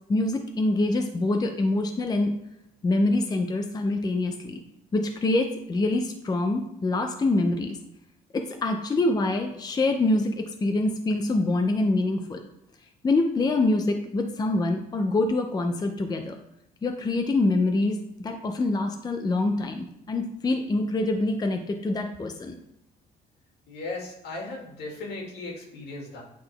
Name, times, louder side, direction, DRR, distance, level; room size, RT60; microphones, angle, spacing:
voice 1, 0.1-2.4 2.8-4.6 4.9-7.8 8.3-12.4 13.0-16.3 16.8-22.6, left 2 dB, 25° left, 4 dB, 0.6 m, -25 dB
voice 2, 23.7-26.2, left 2 dB, 75° left, -1 dB, 2.2 m, -37 dB
8.9 x 3.9 x 3.4 m, 0.85 s
cardioid pair, 110°, 17 cm